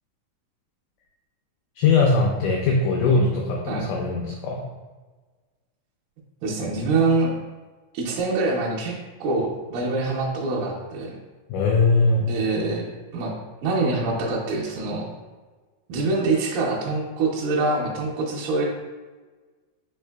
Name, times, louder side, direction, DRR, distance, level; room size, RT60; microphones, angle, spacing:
voice 1, 1.8-4.6 11.5-12.2, left 3 dB, 90° left, -1 dB, 1.8 m, -20 dB
voice 2, 6.4-7.3 7.9-9.0 9.2-11.2 12.3-12.9 13.1-13.3 13.6-15.1 15.9-18.7, right 3 dB, 80° right, -5 dB, 2.2 m, -24 dB
5.5 x 3.2 x 2.2 m, 1.3 s
omnidirectional pair, 4.2 m